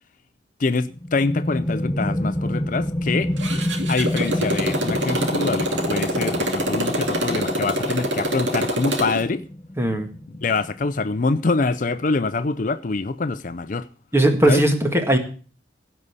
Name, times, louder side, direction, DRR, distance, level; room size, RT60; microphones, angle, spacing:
voice 1, 0.6-3.3 3.9-9.4 10.3-13.9 14.5-14.6, left 3 dB, 45° left, 0.5 m, -25 dB
sound 1, 0.9-12.3, left 1 dB, 15° left, 0.8 m, -29 dB
Motorcycle, 3.4-9.2, equal, 85° right, 2.7 m, -25 dB
voice 2, 9.8-10.1 14.1-15.2, right 1 dB, 15° right, 1.8 m, -18 dB
16.5 x 5.5 x 8.2 m
head